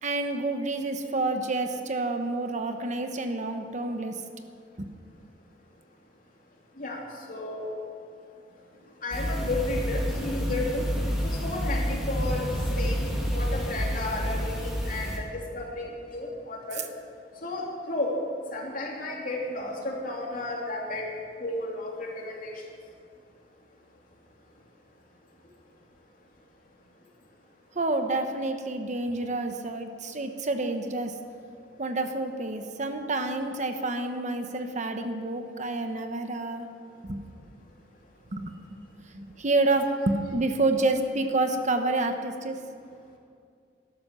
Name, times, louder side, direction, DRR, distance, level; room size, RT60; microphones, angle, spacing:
voice 1, 0.0-4.2 4.8-4.9 27.7-31.1 31.8-36.7 37.0-37.2 38.3-38.5 39.1-42.6, right 2 dB, 45° right, 6 dB, 1.0 m, -28 dB
voice 2, 7.3-7.8 9.0-10.8 11.2-12.5 12.8-16.8 17.4-18.1 18.5-21.1 21.4-22.5, left 2 dB, 50° left, -1 dB, 3.0 m, -33 dB
sound 1, 9.1-15.2, equal, ahead, 2.6 m, -29 dB
13.0 x 12.0 x 6.9 m, 2.3 s
head